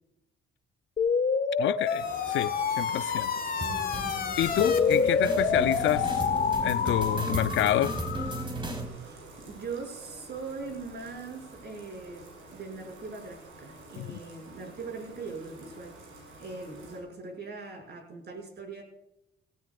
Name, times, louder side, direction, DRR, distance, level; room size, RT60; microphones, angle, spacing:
sound 1, 1.0-8.4, left 6 dB, 45° left, 1.4 m, -28 dB
voice 1, 1.6-3.3 4.4-6.2 6.6-7.9 14.0-14.2, left 12 dB, 75° left, 0.5 m, -28 dB
Bathtub (filling or washing), 2.0-17.0, right 2 dB, 85° right, 6.1 m, -48 dB
sound 2, 3.6-8.9, right 1 dB, 25° right, 3.6 m, -35 dB
voice 2, 9.0-18.8, right 4 dB, 55° right, 6.0 m, -41 dB
18.0 x 18.0 x 2.4 m
cardioid pair, 90°, 20 cm